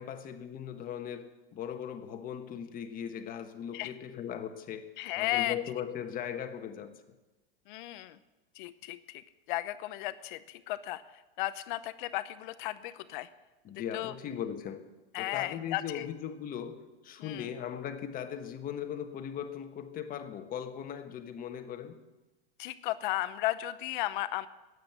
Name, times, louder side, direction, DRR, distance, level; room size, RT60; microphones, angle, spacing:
voice 1, 0.0-6.9 13.6-14.8 15.2-22.0, left 9 dB, 30° left, 7 dB, 1.3 m, -39 dB
voice 2, 5.0-5.6 7.7-8.2 8.6-9.2 9.5-11.0 11.4-13.3 13.9-14.1 15.1-16.1 17.2-17.5 22.6-24.5, left 16 dB, 55° left, 13 dB, 0.8 m, -34 dB
13.0 x 9.4 x 8.0 m, 1.1 s
supercardioid pair, 130°, 30 cm